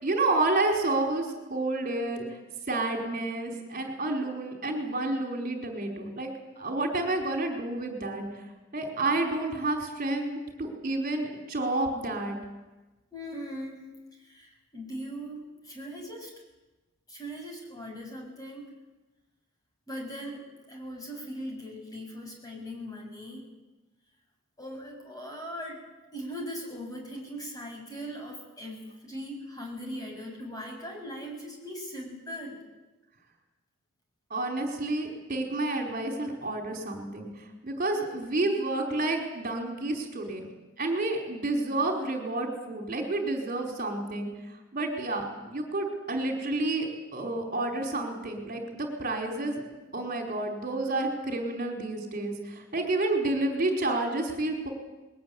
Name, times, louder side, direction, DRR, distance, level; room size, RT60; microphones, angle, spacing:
voice 1, 0.0-2.2 2.7-6.3 6.6-8.4 8.7-12.4 34.3-40.5 40.8-44.3 44.7-49.6 49.9-54.7, right 2 dB, 40° right, 0 dB, 4.5 m, -30 dB
voice 2, 13.1-13.9 14.2-16.3 17.1-18.6 19.9-23.4 24.6-25.8 26.1-32.6, equal, 20° left, 1 dB, 7.3 m, -40 dB
21.5 x 19.0 x 9.7 m, 1.1 s
head